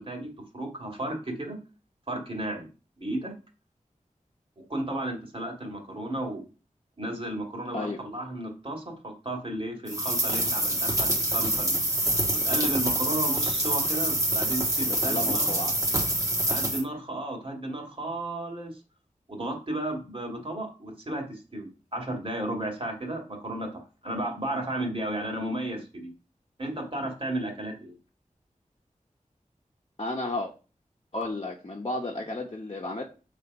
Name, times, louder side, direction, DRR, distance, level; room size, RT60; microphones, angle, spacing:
voice 1, 0.0-1.6 2.1-2.7 3.0-3.3 4.7-6.5 7.0-11.8 12.3-15.5 16.5-18.7 19.3-26.1 26.6-27.9, right 1 dB, 40° right, 1 dB, 2.3 m, -33 dB
sound 1, 9.9-16.8, right 1 dB, 25° right, 1.3 m, -26 dB
voice 2, 14.9-15.7 30.0-30.5 31.1-33.0, left 2 dB, 45° left, -2 dB, 1.0 m, -32 dB
7.2 x 3.4 x 5.3 m, 0.34 s
wide cardioid pair, 65°, 13 cm